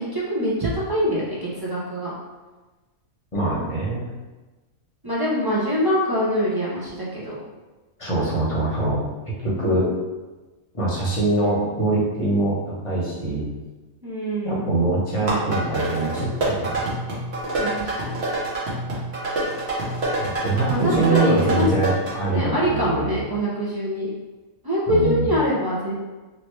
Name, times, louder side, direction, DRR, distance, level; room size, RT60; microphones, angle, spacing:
voice 1, 0.0-2.1 5.0-7.4 14.0-14.6 17.6-18.1 20.7-21.7 22.3-24.1 24.6-25.9, equal, 25° right, -7 dB, 0.5 m, -24 dB
voice 2, 3.3-4.1 8.0-9.0 9.4-9.9 10.7-13.5 14.4-16.9 20.4-23.2 24.9-25.3, right 2 dB, 25° left, -7 dB, 0.9 m, -23 dB
sound 1, 15.1-22.1, right 1 dB, 50° right, 1.1 m, -27 dB
3.1 x 2.8 x 3.1 m, 1.2 s
omnidirectional pair, 1.5 m